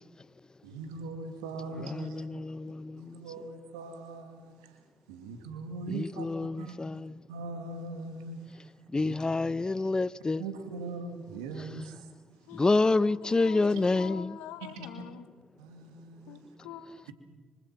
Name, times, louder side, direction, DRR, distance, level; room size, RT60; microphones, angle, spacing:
voice 1, 0.6-2.3 3.0-4.5 5.1-6.3 6.6-6.8 7.3-8.4 9.0-9.2 10.4-12.0 14.7-14.9 15.6-16.4, right 3 dB, 85° right, 2.3 m, -40 dB
voice 2, 1.7-3.5 5.9-7.2 8.9-10.4 11.6-11.7 12.5-14.4, left 3 dB, 25° left, 0.7 m, -28 dB
voice 3, 13.2-15.4 16.3-17.1, left 8 dB, 80° left, 1.5 m, -45 dB
25.0 x 24.5 x 6.0 m
hypercardioid pair, 45°, 3 cm